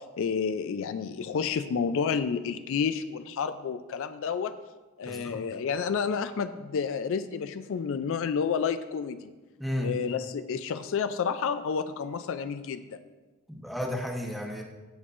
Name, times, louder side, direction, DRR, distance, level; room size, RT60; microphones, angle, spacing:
voice 1, 0.0-4.5 5.0-9.3 9.8-13.0, left 6 dB, 65° left, 11 dB, 0.4 m, -30 dB
voice 2, 5.0-5.4 9.6-9.9 13.5-14.6, left 1 dB, ahead, 0 dB, 1.0 m, -33 dB
15.0 x 5.4 x 2.5 m, 1.2 s
head